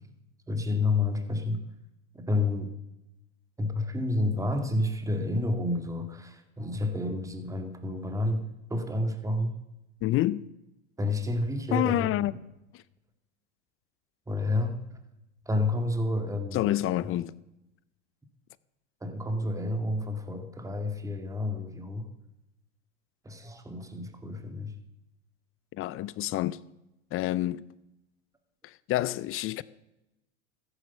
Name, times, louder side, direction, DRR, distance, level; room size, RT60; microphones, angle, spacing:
voice 1, 0.5-1.6 2.1-2.7 3.6-9.5 11.0-12.1 14.3-15.0 15.5-16.7 19.0-22.1 23.2-24.7, left 2 dB, 10° right, 1.9 m, -30 dB
voice 2, 10.0-10.5 11.7-12.3 16.5-17.3 25.8-26.6 27.1-27.6 28.6-29.6, left 15 dB, 40° left, 0.6 m, -28 dB
14.5 x 9.8 x 6.8 m
hypercardioid pair, 95°, 35 cm